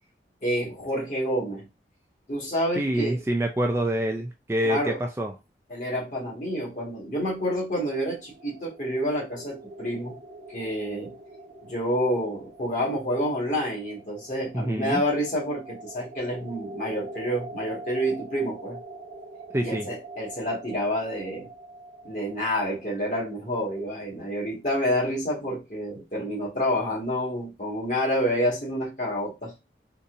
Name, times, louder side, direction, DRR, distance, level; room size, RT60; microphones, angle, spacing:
voice 1, 0.4-1.7 2.3-3.2 4.6-5.0 5.7-10.2 10.5-11.1 11.6-18.8 19.6-21.5 22.0-29.5, equal, 45° left, 1.7 m, -28 dB
voice 2, 2.8-5.3 14.5-15.0 19.5-19.9, right 1 dB, 15° right, 0.3 m, -26 dB
sound 1, 7.5-24.1, right 2 dB, 85° right, 0.7 m, -44 dB
4.0 x 2.7 x 2.5 m
head